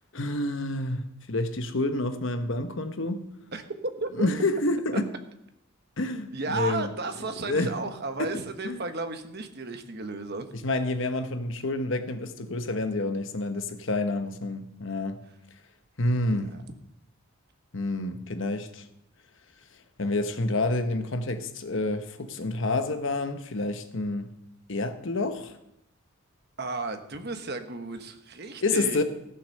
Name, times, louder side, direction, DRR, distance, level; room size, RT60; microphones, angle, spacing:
voice 1, 0.1-3.3 4.2-5.1 6.0-6.9 7.4-7.7 8.2-8.8 10.5-15.2 16.0-16.5 17.7-18.9 20.0-24.3 24.7-25.6 28.6-29.0, left 2 dB, 55° left, 1.0 m, -28 dB
voice 2, 3.5-4.3 6.3-10.5 16.5-16.6 26.6-29.0, right 3 dB, 45° right, 1.1 m, -34 dB
15.0 x 7.1 x 6.5 m
head